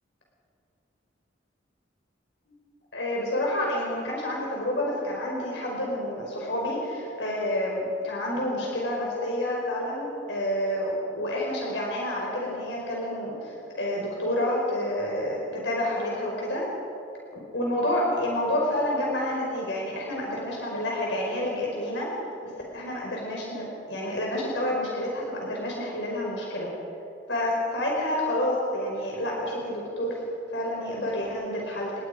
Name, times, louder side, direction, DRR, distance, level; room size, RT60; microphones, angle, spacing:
voice 1, 2.9-16.7 17.3-22.1 22.7-26.7 27.3-30.2 30.5-31.9, left 1 dB, 80° left, -3 dB, 5.1 m, -29 dB
29.5 x 21.5 x 5.2 m, 2.7 s
head